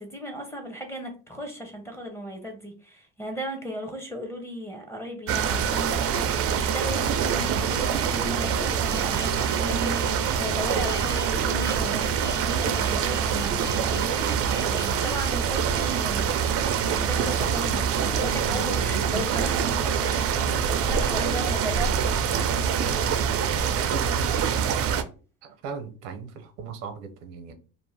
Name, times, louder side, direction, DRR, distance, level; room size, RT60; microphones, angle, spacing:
voice 1, 0.0-16.5 16.9-22.5, equal, 5° left, 2 dB, 0.7 m, -36 dB
sound 1, 5.3-25.0, right 7 dB, 45° right, 0.4 m, -25 dB
Alarm, 6.1-17.9, left 3 dB, 65° left, 1.1 m, -46 dB
voice 2, 23.9-24.7 25.4-27.5, right 5 dB, 85° right, 8 dB, 0.7 m, -38 dB
2.6 x 2.1 x 3.2 m, 0.36 s
supercardioid pair, 95°, 35 cm